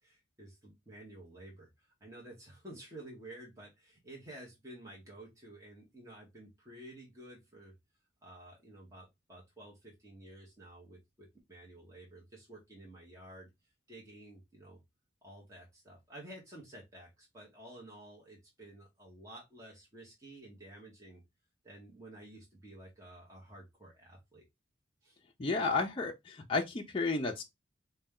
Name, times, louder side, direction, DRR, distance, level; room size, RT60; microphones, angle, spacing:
voice 1, 0.0-7.7 8.2-13.5 13.9-14.8 15.2-21.2 21.6-24.4 25.0-25.2, right 1 dB, 15° right, 0.9 m, -52 dB
voice 2, 25.4-27.4, left 3 dB, 30° left, 0.4 m, -32 dB
4.1 x 2.2 x 3.6 m
head